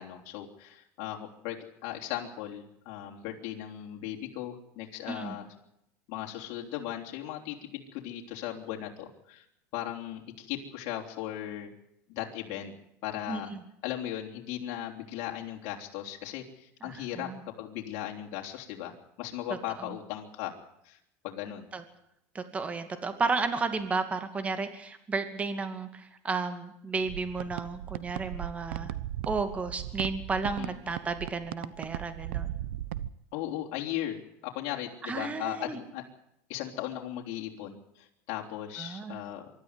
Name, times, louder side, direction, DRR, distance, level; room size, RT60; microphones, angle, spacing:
voice 1, 0.0-1.6 1.8-5.5 6.1-9.5 9.7-11.7 12.1-12.7 13.0-13.5 13.8-18.9 19.2-20.5 20.8-21.0 21.2-21.7 30.6-30.7 33.3-36.0 36.5-39.5, left 12 dB, 65° left, 0 dB, 3.7 m, -37 dB
voice 2, 13.3-13.6 16.8-17.4 21.7-21.8 22.3-28.9 29.3-32.5 35.0-35.8 38.8-39.2, right 4 dB, 20° right, 9 dB, 2.4 m, -33 dB
sound 1, 27.0-33.1, right 13 dB, 85° right, 0.9 m, -37 dB
24.5 x 13.0 x 9.8 m, 0.79 s
supercardioid pair, 125°, 6 cm